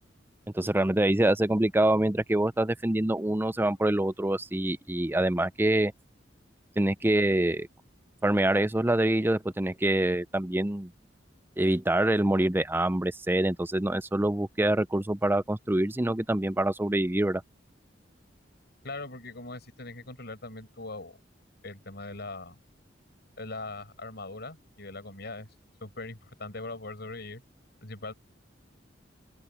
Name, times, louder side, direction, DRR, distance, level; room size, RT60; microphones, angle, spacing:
voice 1, 0.5-5.9 6.8-7.7 8.2-10.9 11.6-17.4, right 1 dB, 10° right, 0.6 m, -25 dB
voice 2, 18.8-21.2 21.6-22.6 23.4-25.5 25.8-27.4 27.8-28.1, left 2 dB, 60° left, 6.2 m, -40 dB
open air
head